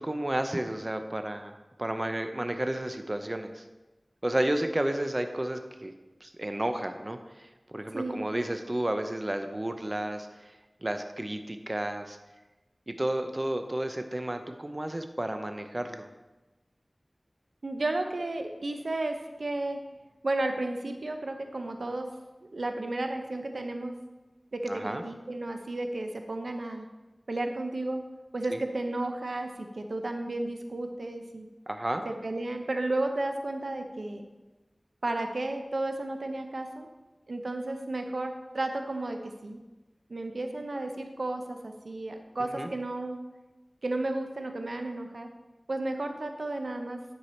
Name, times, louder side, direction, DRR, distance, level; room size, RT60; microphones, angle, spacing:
voice 1, 0.0-3.6 4.2-5.9 6.2-10.5 10.8-12.2 12.9-16.1 24.7-25.0 28.5-28.6 31.7-32.0 42.5-42.7, right 1 dB, 35° right, 7 dB, 0.6 m, -32 dB
voice 2, 7.9-8.2 17.6-19.8 20.2-22.1 22.5-23.9 24.5-26.9 27.3-28.0 28.3-31.5 32.0-34.3 35.0-36.9 37.3-39.6 40.1-43.2 43.8-45.3 45.7-47.0, right 2 dB, 85° right, 5 dB, 0.7 m, -33 dB
9.5 x 4.7 x 4.2 m, 1.1 s
wide cardioid pair, 50°, 0 cm